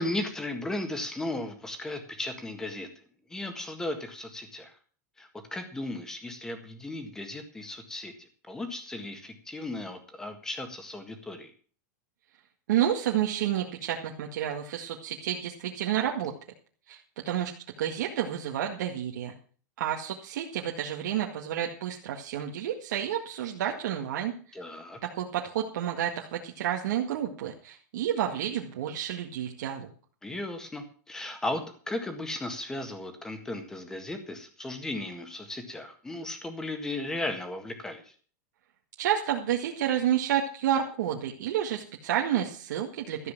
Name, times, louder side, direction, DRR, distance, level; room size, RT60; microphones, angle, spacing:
voice 1, 0.0-2.9 3.3-4.7 5.2-8.1 8.5-11.5 24.5-25.0 30.2-38.0, left 2 dB, 5° left, 7 dB, 1.7 m, -36 dB
voice 2, 12.7-16.3 16.9-17.5 17.8-19.3 19.8-24.3 25.0-29.9 39.0-43.3, right 10 dB, 70° right, 0 dB, 1.9 m, -30 dB
13.5 x 7.6 x 7.4 m, 0.42 s
supercardioid pair, 170°, 10 cm